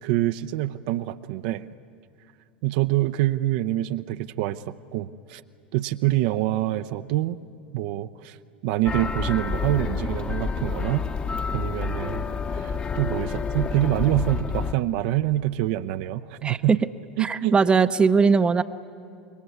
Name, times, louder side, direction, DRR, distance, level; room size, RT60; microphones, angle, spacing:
voice 1, 0.0-1.7 2.6-5.4 5.7-7.4 7.7-8.4 8.6-11.1 11.5-12.2 12.5-16.8 17.2-17.5, right 15 dB, 55° right, 10 dB, 0.6 m, -26 dB
sound 1, 8.9-14.7, left 5 dB, 20° left, 1.0 m, -29 dB
voice 2, 16.4-16.8 17.2-18.6, right 5 dB, 20° right, 12 dB, 0.7 m, -20 dB
27.0 x 22.0 x 9.6 m, 2.5 s
figure-of-eight pair, 80°, 5 cm